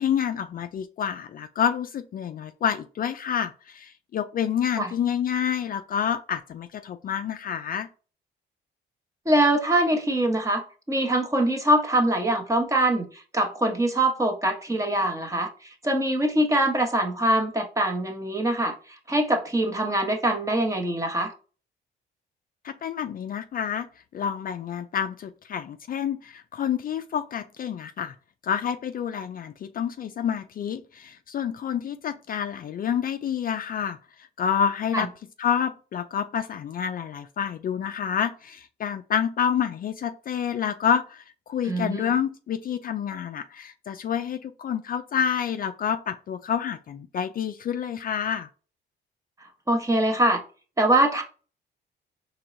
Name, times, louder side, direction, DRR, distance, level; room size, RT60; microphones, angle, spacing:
voice 1, 0.0-7.9 22.6-23.9 24.1-28.1 28.4-35.1 35.4-48.5, left 8 dB, 45° left, 0.4 m, -28 dB
voice 2, 9.3-13.0 13.3-15.5 15.8-18.7 19.1-21.3 34.9-35.0 41.6-42.1 49.7-50.4 50.8-51.2, right 1 dB, 15° right, 1.0 m, -23 dB
4.5 x 3.2 x 2.6 m
cardioid pair, 90°, 20 cm